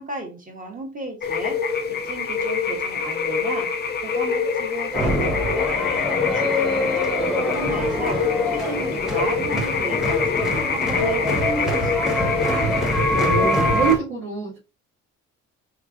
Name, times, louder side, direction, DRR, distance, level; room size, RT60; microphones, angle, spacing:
voice 1, 0.0-1.6 1.9-3.7 4.0-6.1 6.3-8.2 8.5-10.4 10.7-12.7, right 2 dB, 25° right, 2 dB, 1.5 m, -34 dB
sound 1, 1.2-13.9, left 5 dB, 35° left, 0.5 m, -25 dB
sound 2, 4.9-14.0, equal, ahead, 1.1 m, -25 dB
voice 2, 13.1-14.6, right 5 dB, 85° right, -9 dB, 2.0 m, -25 dB
4.3 x 3.2 x 2.5 m, 0.31 s
cardioid pair, 90°, 30 cm